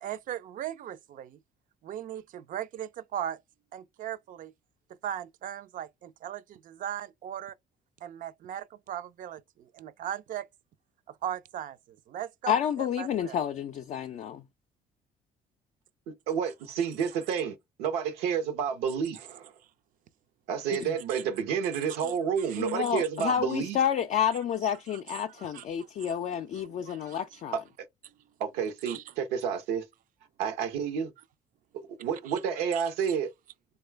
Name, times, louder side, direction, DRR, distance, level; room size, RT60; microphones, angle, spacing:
voice 1, 0.0-1.4 1.8-3.4 3.7-4.5 5.0-7.5 8.0-10.5 11.1-13.4 21.1-21.2 22.0-22.1 22.4-22.6 25.4-25.6 26.0-26.1 26.5-27.2 28.9-29.0 32.3-32.4 32.7-32.8 33.1-33.2, right 10 dB, 55° right, 0.4 m, -38 dB
voice 2, 12.5-14.4 20.7-20.9 22.6-27.6, left 9 dB, 50° left, 0.4 m, -30 dB
voice 3, 16.8-19.5 20.5-23.8 27.5-27.6 28.4-29.8 30.4-31.1 31.7-33.3, right 7 dB, 90° right, 0.7 m, -30 dB
3.1 x 2.3 x 3.2 m
supercardioid pair, 75°, 16 cm